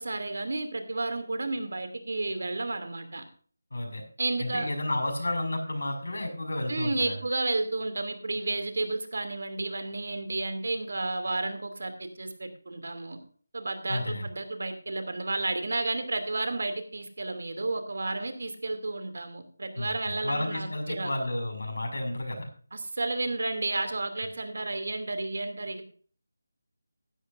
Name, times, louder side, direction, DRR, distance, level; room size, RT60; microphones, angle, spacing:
voice 1, 0.0-3.2 4.2-4.7 6.7-13.2 13.5-21.1 22.7-25.9, right 2 dB, 60° right, 8 dB, 2.7 m, -32 dB
voice 2, 3.7-4.0 4.4-7.2 13.9-14.3 19.8-22.5, left 1 dB, 75° left, 4 dB, 5.9 m, -32 dB
16.0 x 12.0 x 2.6 m, 0.43 s
figure-of-eight pair, 175°, 0 cm